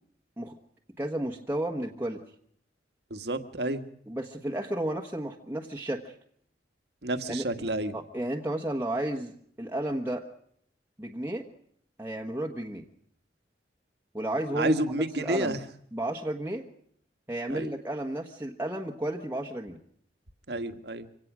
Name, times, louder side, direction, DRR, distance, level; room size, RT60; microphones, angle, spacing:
voice 1, 1.0-2.2 4.1-6.1 7.3-7.5 7.9-9.3 9.6-10.3 11.0-11.4 12.0-12.8 14.1-15.6 15.9-16.6 17.3-19.8, right 1 dB, 10° right, 0 dB, 1.4 m, -32 dB
voice 2, 3.1-3.8 7.0-7.9 14.6-15.6 17.5-17.7 20.5-21.1, right 1 dB, 65° right, 9 dB, 1.7 m, -30 dB
25.5 x 17.5 x 6.2 m, 0.65 s
head